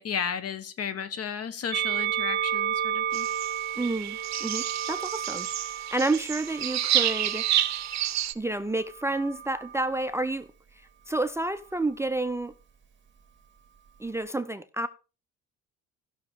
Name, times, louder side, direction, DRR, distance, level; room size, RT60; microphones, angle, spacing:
voice 1, 0.0-3.3, left 7 dB, 55° left, 1.1 m, -33 dB
Musical instrument, 1.7-8.1 9.0-10.0, right 9 dB, 40° right, 1.9 m, -32 dB
sound 1, 3.1-8.3, right 12 dB, 60° right, 0.7 m, -29 dB
voice 2, 3.8-7.5 8.4-10.5 11.1-12.5 14.0-14.9, right 2 dB, 10° right, 0.5 m, -30 dB
15.0 x 6.2 x 3.6 m
cardioid pair, 90°, 30 cm